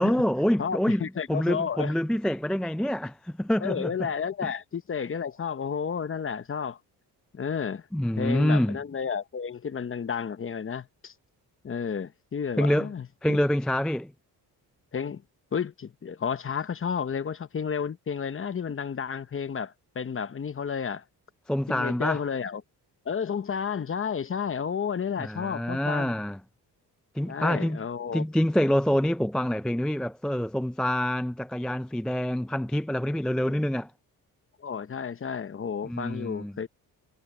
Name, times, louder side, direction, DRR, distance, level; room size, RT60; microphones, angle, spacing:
voice 1, 0.0-4.1 4.4-4.5 7.9-8.8 12.6-12.9 13.2-14.1 21.5-22.2 25.2-26.4 27.1-27.8 28.1-33.9 35.8-36.5, equal, ahead, 0.3 m, -26 dB
voice 2, 0.6-1.9 3.6-6.8 7.3-7.8 8.2-11.1 11.6-13.1 14.9-15.2 15.5-21.0 21.7-22.6 23.1-26.1 27.3-28.2 34.6-36.7, left 6 dB, 35° left, 0.9 m, -31 dB
cardioid pair, 85°, 39 cm